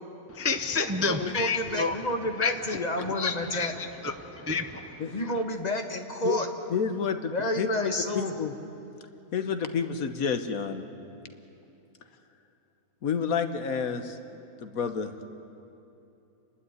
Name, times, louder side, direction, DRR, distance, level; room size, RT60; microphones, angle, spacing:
voice 1, 0.3-2.0 2.4-2.8 3.2-5.2, left 4 dB, 20° right, 8 dB, 0.4 m, -30 dB
voice 2, 1.0-3.7 5.1-6.5 7.3-8.4, left 1 dB, 30° left, 4 dB, 1.6 m, -30 dB
voice 3, 6.7-8.5 9.3-10.9 13.0-14.2 14.6-15.1, left 6 dB, 70° left, 9 dB, 1.5 m, -29 dB
29.5 x 12.0 x 9.6 m, 2.8 s
omnidirectional pair, 1.5 m